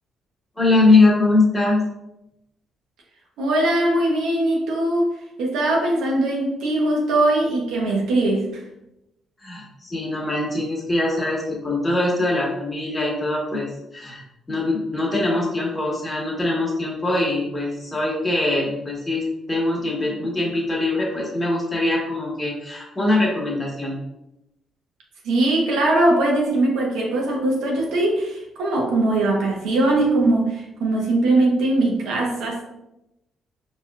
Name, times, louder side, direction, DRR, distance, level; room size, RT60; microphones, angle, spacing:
voice 1, 0.6-1.8 9.4-13.7 13.9-24.0, left 2 dB, 20° left, -3 dB, 1.3 m, -22 dB
voice 2, 3.4-5.1 5.4-8.6 25.2-32.6, right 2 dB, 85° right, -1 dB, 1.0 m, -21 dB
4.5 x 3.1 x 2.4 m, 0.89 s
cardioid pair, 90°, 0 cm